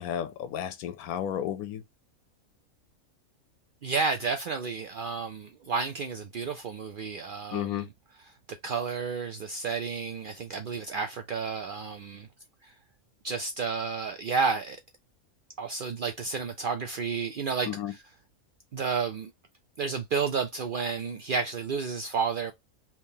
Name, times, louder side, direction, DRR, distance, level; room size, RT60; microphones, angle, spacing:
voice 1, 0.0-1.8 7.5-7.9 17.7-17.9, left 10 dB, 85° left, 1.1 m, -32 dB
voice 2, 3.8-7.9 8.6-12.3 12.6-12.7 13.2-14.8 15.6-18.0 18.7-19.3 19.8-22.5, right 5 dB, 85° right, 0.4 m, -31 dB
3.6 x 2.9 x 2.7 m
omnidirectional pair, 1.5 m